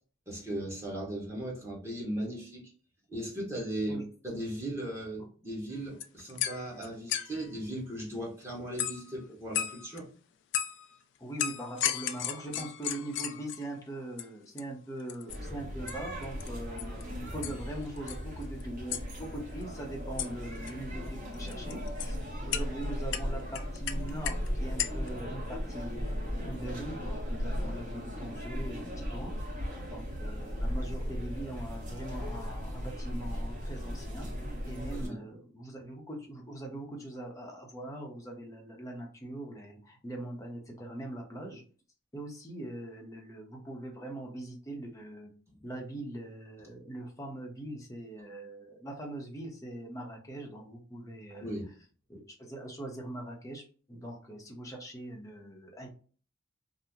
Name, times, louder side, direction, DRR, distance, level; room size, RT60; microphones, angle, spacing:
voice 1, 0.3-2.7 3.1-10.1 34.9-35.2 51.4-51.7, right 1 dB, 15° right, -5 dB, 1.0 m, -37 dB
sound 1, 5.7-5.8 6.0-7.5 8.8-9.1 9.5-10.0 10.5-10.9 11.4-13.8 14.2-14.3 14.6-14.7 15.0-15.4 15.9-16.0 16.2-16.5 16.8-17.0 17.4-17.6 18.0-18.6 18.9-19.0 20.2-20.3 20.6-20.7 21.3-22.1 22.5-22.6 23.1-24.5 24.8-25.1, left 10 dB, 60° left, 0.3 m, -34 dB
voice 2, 11.2-22.2 22.4-29.3 29.9-34.3 34.6-41.6 42.1-45.3 45.6-51.6 52.1-55.9, right 1 dB, 15° left, 0 dB, 0.7 m, -42 dB
sound 2, 15.3-35.1, equal, 40° right, 1.0 m, -37 dB
2.8 x 2.0 x 3.5 m, 0.40 s
head